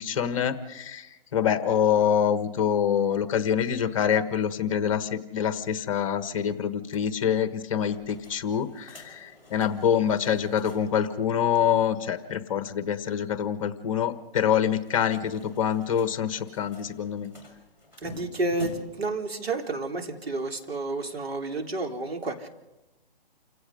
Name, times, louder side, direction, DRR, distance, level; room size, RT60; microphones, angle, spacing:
voice 1, 0.0-17.3, left 8 dB, 35° left, 11 dB, 1.5 m, -26 dB
sound 1, 7.8-11.1 11.4-11.5 11.7-11.8 14.6-19.1, left 2 dB, 10° right, 5.5 m, -47 dB
voice 2, 18.0-22.5, right 2 dB, 90° right, 3 dB, 4.0 m, -30 dB
29.0 x 16.5 x 5.4 m, 1.0 s
hypercardioid pair, 160°, 30 cm